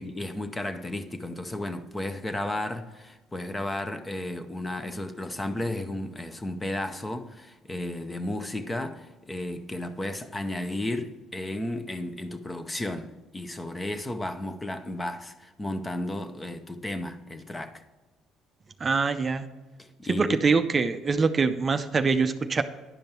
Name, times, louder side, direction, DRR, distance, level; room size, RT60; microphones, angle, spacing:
voice 1, 0.0-17.8 19.8-20.4, left 1 dB, 15° left, 0.7 m, -33 dB
voice 2, 18.8-19.5 20.1-22.6, right 4 dB, 30° right, 0.5 m, -24 dB
10.5 x 5.2 x 4.4 m
cardioid pair, 110°, 0 cm